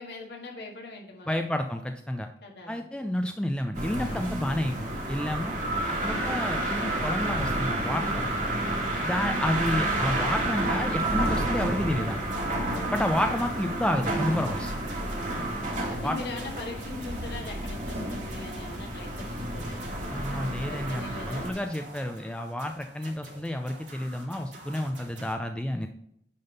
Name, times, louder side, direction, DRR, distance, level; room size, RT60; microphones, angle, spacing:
voice 1, 0.0-1.5 2.4-2.8 15.8-19.9 20.7-21.5, left 2 dB, 60° left, -1 dB, 1.8 m, -41 dB
voice 2, 1.3-2.3 2.7-5.5 6.0-8.5 9.0-12.2 12.9-14.7 16.0-16.2 20.1-25.9, left 1 dB, 5° left, 5 dB, 0.3 m, -30 dB
sound 1, 3.7-21.5, right 1 dB, 45° right, 1.6 m, -30 dB
sound 2, 12.0-25.3, right 2 dB, 80° right, 2.2 m, -48 dB
9.4 x 3.5 x 5.4 m, 0.75 s
head